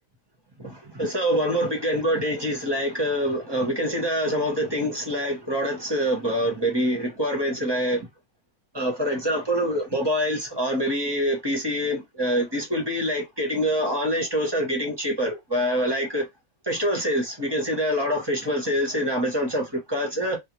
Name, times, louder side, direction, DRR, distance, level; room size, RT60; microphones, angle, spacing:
voice 1, 0.6-8.1 8.7-16.2 16.6-20.4, equal, 25° right, 0.7 m, -25 dB
2.4 x 2.3 x 2.9 m
omnidirectional pair, 1.5 m